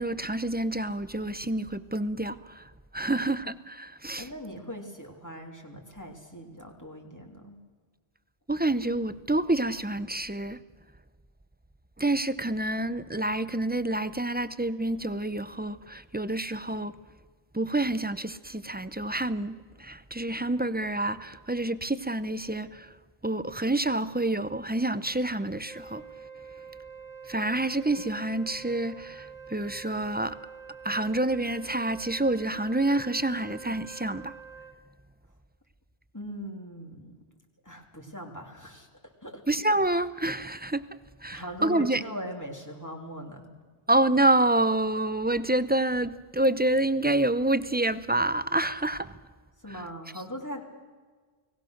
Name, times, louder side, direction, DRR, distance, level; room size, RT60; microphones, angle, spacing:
voice 1, 0.0-4.3 8.5-10.6 12.0-17.0 17.5-22.9 23.2-26.0 27.3-30.4 30.8-34.3 39.5-40.8 41.2-42.0 43.9-49.1 49.7-49.8, right 1 dB, 10° right, 0.5 m, -28 dB
voice 2, 4.2-7.6 36.1-37.1 37.6-38.9 39.2-39.4 41.3-43.5 49.6-50.6, equal, 15° left, 3.1 m, -40 dB
Wind instrument woodwind instrument, 25.6-34.8, right 6 dB, 30° right, 1.4 m, -46 dB
29.5 x 19.0 x 6.6 m
omnidirectional pair, 1.1 m